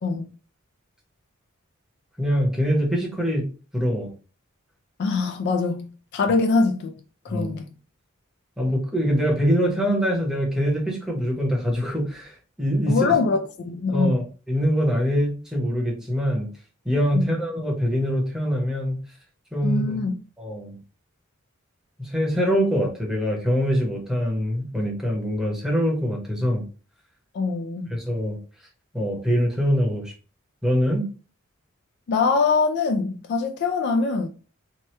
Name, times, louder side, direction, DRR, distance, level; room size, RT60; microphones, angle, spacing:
voice 1, 2.2-3.5 3.7-4.1 7.3-7.5 8.6-13.2 13.9-16.5 16.8-19.0 19.5-20.0 20.4-20.8 22.0-26.6 27.9-28.4 28.9-30.1 30.6-31.1, equal, ahead, 0.8 m, -24 dB
voice 2, 5.0-6.9 7.2-7.7 12.9-14.2 17.1-17.4 19.6-20.1 27.3-27.9 32.1-34.3, left 4 dB, 55° left, 0.3 m, -23 dB
2.9 x 2.2 x 3.1 m
head